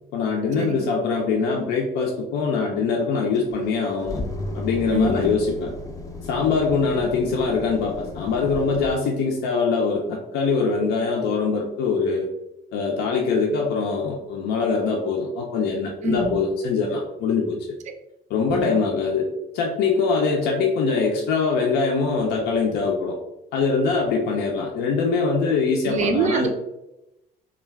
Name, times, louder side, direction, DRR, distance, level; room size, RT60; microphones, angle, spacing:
voice 1, 0.1-4.2 4.5-5.7 6.2-12.3 12.7-17.8 18.3-23.2 23.5-26.5, left 4 dB, 80° left, -1 dB, 0.5 m, -23 dB
sound 1, 3.3-8.9, left 2 dB, 20° left, 0.4 m, -34 dB
voice 2, 4.9-5.3 16.0-16.4 18.5-18.7 25.9-26.5, right 4 dB, 45° right, 6 dB, 0.4 m, -24 dB
2.3 x 2.2 x 3.3 m, 0.92 s
cardioid pair, 110°, 17 cm